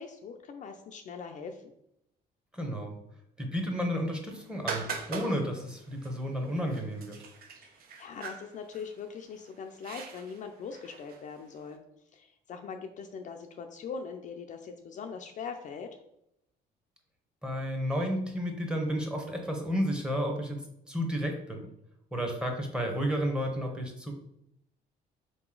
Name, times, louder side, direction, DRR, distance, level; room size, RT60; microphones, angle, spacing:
voice 1, 0.0-1.7 7.6-11.8 12.1-16.0, left 5 dB, 50° left, 4 dB, 0.4 m, -41 dB
voice 2, 2.5-3.0 3.4-7.2 17.4-20.6 20.9-21.7 22.1-24.1, equal, 5° right, 1 dB, 0.9 m, -32 dB
sound 1, 4.3-11.6, right 5 dB, 60° right, 0.7 m, -42 dB
3.8 x 2.9 x 3.8 m, 0.78 s
cardioid pair, 110°, 17 cm